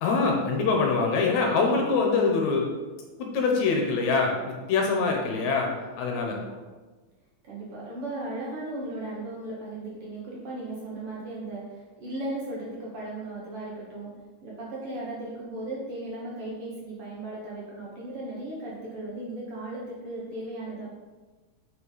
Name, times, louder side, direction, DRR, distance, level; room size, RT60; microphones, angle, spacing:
voice 1, 0.0-2.7 3.2-5.7 6.0-6.4, left 4 dB, 75° left, 0 dB, 2.1 m, -24 dB
voice 2, 4.9-5.5 6.2-6.5 7.4-14.1 14.4-20.9, right 2 dB, 55° right, -5 dB, 1.8 m, -36 dB
5.5 x 5.4 x 4.1 m, 1.3 s
omnidirectional pair, 3.6 m